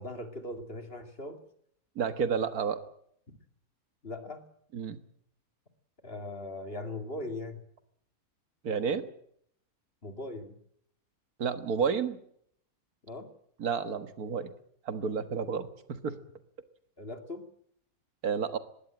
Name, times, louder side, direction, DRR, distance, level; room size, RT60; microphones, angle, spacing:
voice 1, 0.0-1.4 4.0-4.4 6.0-7.6 10.0-10.6 13.0-13.3 17.0-17.5, left 2 dB, 40° left, 7 dB, 2.5 m, -39 dB
voice 2, 2.0-2.8 4.7-5.0 8.6-9.0 11.4-12.2 13.6-14.5 14.9-16.2 18.2-18.6, right 6 dB, 85° right, 10 dB, 1.9 m, -30 dB
21.0 x 16.5 x 8.9 m, 0.69 s
omnidirectional pair, 1.5 m